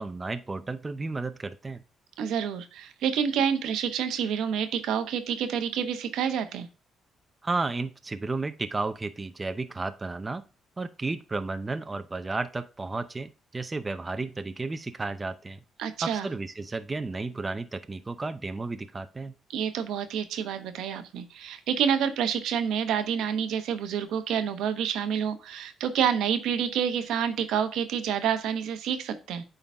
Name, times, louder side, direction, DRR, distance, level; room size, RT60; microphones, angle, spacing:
voice 1, 0.0-1.8 7.4-10.4 10.8-15.6 16.0-19.3, right 3 dB, 25° right, 10 dB, 0.6 m, -33 dB
voice 2, 2.2-6.7 15.8-16.3 19.5-29.4, right 8 dB, 85° right, 9 dB, 0.9 m, -28 dB
8.5 x 3.9 x 3.4 m, 0.33 s
cardioid pair, 90°, 0 cm